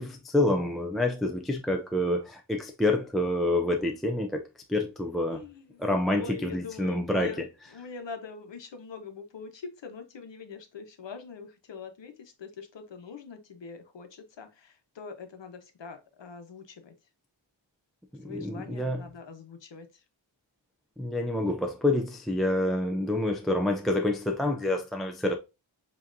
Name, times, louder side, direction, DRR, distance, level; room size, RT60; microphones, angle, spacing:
voice 1, 0.0-4.4 4.7-5.4 5.8-7.3 18.1-19.0 21.0-25.3, left 1 dB, ahead, 0.3 m, -27 dB
voice 2, 5.3-5.8 6.2-7.4 7.7-16.9 18.2-20.0, left 5 dB, 65° left, 1.0 m, -43 dB
7.4 x 2.8 x 2.6 m
wide cardioid pair, 160°, 47 cm